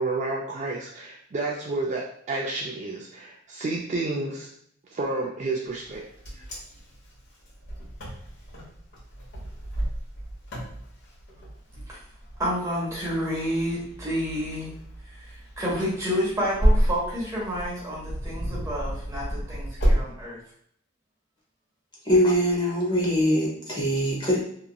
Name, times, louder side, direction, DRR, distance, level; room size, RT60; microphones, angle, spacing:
voice 1, 0.0-4.5 4.9-6.0 6.4-6.5, right 2 dB, 35° right, -2 dB, 0.3 m, -30 dB
Wind, 5.8-20.0, equal, 65° left, 1.2 m, -30 dB
voice 2, 12.4-14.7 15.1-20.4, equal, 15° right, -6 dB, 1.1 m, -29 dB
voice 3, 22.0-24.4, equal, 25° left, -4 dB, 0.7 m, -22 dB
2.9 x 2.5 x 2.2 m, 0.67 s
head